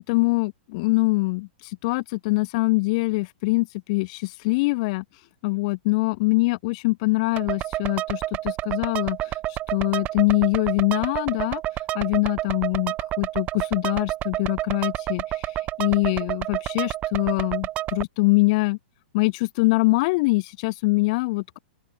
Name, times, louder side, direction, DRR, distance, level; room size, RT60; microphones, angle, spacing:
voice 1, 0.0-5.0 5.4-18.8 19.1-21.6, left 24 dB, 40° left, 6.3 m, -24 dB
sound 1, 7.4-18.0, right 15 dB, 25° right, 4.6 m, -29 dB
open air
hypercardioid pair, 155°, 6 cm